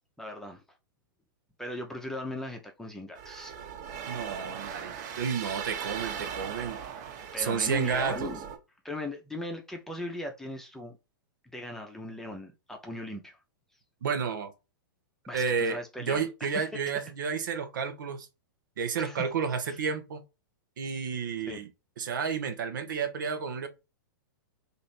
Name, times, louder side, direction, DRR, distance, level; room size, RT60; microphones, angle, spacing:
voice 1, 0.2-0.6 1.6-3.5 7.3-8.4 8.8-10.9 11.4-13.4 15.3-16.3 16.5-16.6 19.0-19.2 19.7-19.8 21.4-21.6, left 1 dB, 5° left, 0.8 m, -38 dB
sound 1, 3.1-8.6, right 7 dB, 50° right, 1.3 m, -39 dB
voice 2, 4.1-6.8 7.4-8.3 14.0-14.5 15.3-15.8 16.1-18.3 18.8-20.2 20.8-21.7 22.0-23.7, right 6 dB, 70° right, 0.9 m, -31 dB
3.1 x 2.7 x 4.1 m
hypercardioid pair, 115°, 11 cm